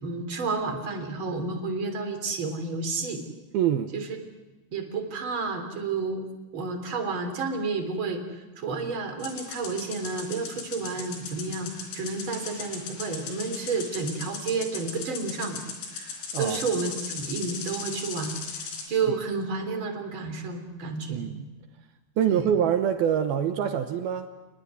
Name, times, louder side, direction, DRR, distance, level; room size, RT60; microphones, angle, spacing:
voice 1, 0.0-3.2 3.9-4.1 4.7-6.2 6.5-15.6 15.9-21.3 22.3-22.5, right 4 dB, 30° right, 5 dB, 3.4 m, -31 dB
voice 2, 3.5-3.9 16.3-16.6 21.1-21.5 22.2-24.3, right 9 dB, 75° right, 8 dB, 2.3 m, -25 dB
sound 1, 9.2-18.9, left 5 dB, 85° left, 6.2 m, -38 dB
28.5 x 20.0 x 9.7 m, 1.1 s
omnidirectional pair, 5.7 m